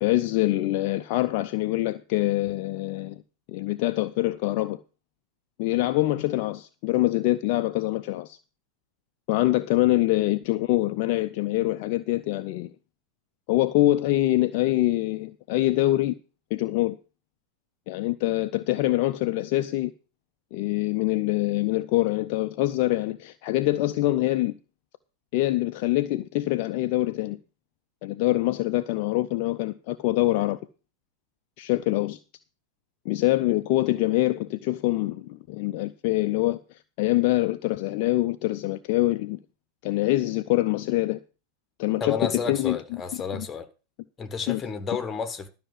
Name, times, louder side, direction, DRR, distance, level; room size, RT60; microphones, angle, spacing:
voice 1, 0.0-3.2 3.5-4.8 5.6-8.4 9.3-12.7 13.5-16.2 16.5-17.0 17.9-19.9 20.5-24.6 25.3-27.4 28.0-30.6 31.6-32.2 33.1-39.4 39.8-41.2 41.8-42.8 43.3-43.5 44.5-44.6, left 17 dB, 45° left, 0.5 m, -24 dB
voice 2, 42.0-43.7 44.2-45.5, left 5 dB, 20° left, 1.4 m, -31 dB
12.5 x 5.8 x 7.2 m
figure-of-eight pair, 90°, 0 cm